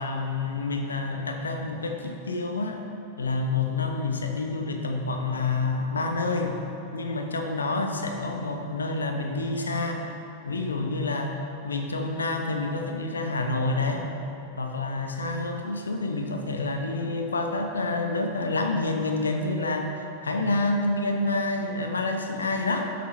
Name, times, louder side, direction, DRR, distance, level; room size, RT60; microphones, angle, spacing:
voice 1, 0.0-2.8 3.2-6.6 6.9-10.0 10.4-11.4 11.6-14.1 14.6-19.9 20.2-22.9, left 3 dB, 75° left, 4 dB, 0.9 m, -28 dB
12.5 x 8.6 x 3.2 m, 3.0 s
figure-of-eight pair, 90°, 0 cm